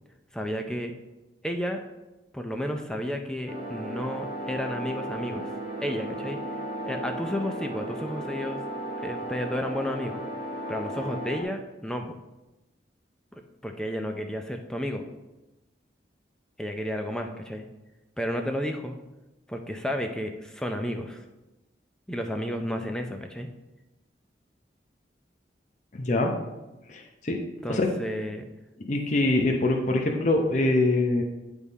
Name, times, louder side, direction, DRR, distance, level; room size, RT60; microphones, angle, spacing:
voice 1, 0.3-0.9 1.4-1.8 2.3-5.5 5.8-6.4 6.9-8.6 9.0-10.2 10.7-12.2 13.3-15.0 16.6-17.7 18.2-19.0 19.5-21.3 22.1-23.5 27.6-28.5, equal, 5° left, 4 dB, 0.5 m, -32 dB
sound 1, 3.5-11.4, right 1 dB, 35° right, 1.4 m, -35 dB
voice 2, 26.0-26.3 26.9-27.4 27.7-27.9 28.8-31.2, left 2 dB, 40° left, 3 dB, 0.7 m, -24 dB
10.0 x 3.6 x 4.1 m, 1.0 s
head